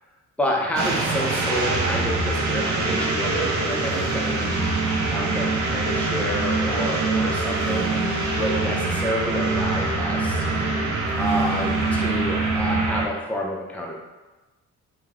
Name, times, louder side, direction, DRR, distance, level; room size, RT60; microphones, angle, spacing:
voice 1, 0.4-4.6 5.1-7.9 8.3-10.5 11.2-14.0, equal, 5° left, -2 dB, 0.5 m, -29 dB
sound 1, 0.8-13.1, right 3 dB, 70° right, 0.6 m, -24 dB
3.0 x 2.2 x 2.4 m, 1.2 s
cardioid pair, 90°, 30 cm